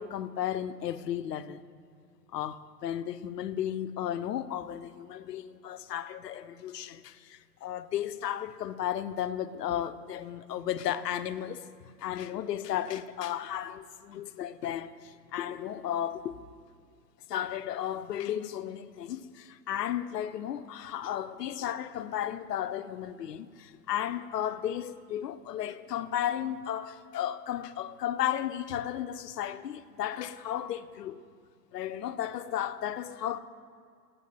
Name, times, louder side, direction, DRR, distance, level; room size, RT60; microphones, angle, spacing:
voice 1, 0.0-1.6 2.3-16.3 17.3-31.3 31.7-33.4, left 11 dB, 75° left, 0.6 m, -34 dB
9.8 x 7.0 x 4.2 m
hypercardioid pair, 115°, 49 cm